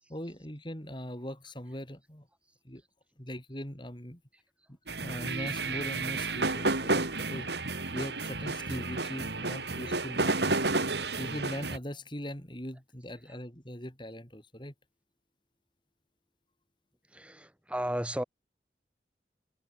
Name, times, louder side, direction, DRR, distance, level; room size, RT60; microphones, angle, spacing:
voice 1, 0.1-2.3 2.6-2.8 3.2-4.2 5.0-7.5 7.9-10.4 11.2-14.7, equal, 25° left, 4.6 m, -40 dB
sound 1, 4.9-11.8, right 3 dB, 75° right, 4.9 m, -31 dB
voice 2, 17.1-18.2, equal, 5° right, 2.7 m, -35 dB
head